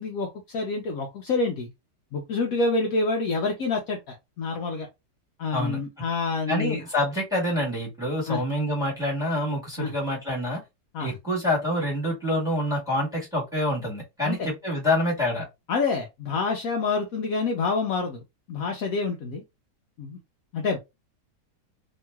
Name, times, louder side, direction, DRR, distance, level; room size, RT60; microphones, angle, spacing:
voice 1, 0.0-1.7 2.1-4.9 5.4-6.8 8.3-8.4 9.8-9.9 10.9-11.2 14.2-14.5 15.7-18.2 18.5-19.4 20.0-20.2 20.5-20.8, left 4 dB, 65° left, 0.9 m, -27 dB
voice 2, 6.5-10.6 11.0-15.4, left 1 dB, ahead, 1.4 m, -26 dB
3.0 x 2.8 x 2.3 m
omnidirectional pair, 1.8 m